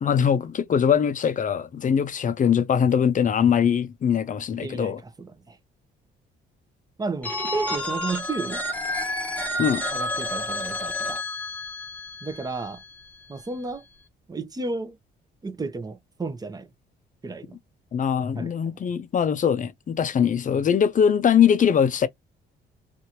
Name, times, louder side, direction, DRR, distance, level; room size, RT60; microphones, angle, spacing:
voice 1, 0.0-5.0 9.6-9.8 17.9-22.1, left 8 dB, 40° left, 0.5 m, -22 dB
voice 2, 4.6-5.6 7.0-8.6 9.9-11.2 12.2-12.8 13.3-13.8 14.3-15.0 15.4-16.7 17.2-17.6 18.4-18.8, right 3 dB, 20° right, 0.7 m, -33 dB
Telephone, 7.2-13.0, left 1 dB, 5° left, 0.9 m, -30 dB
2.8 x 2.5 x 2.8 m
cardioid pair, 90°, 20 cm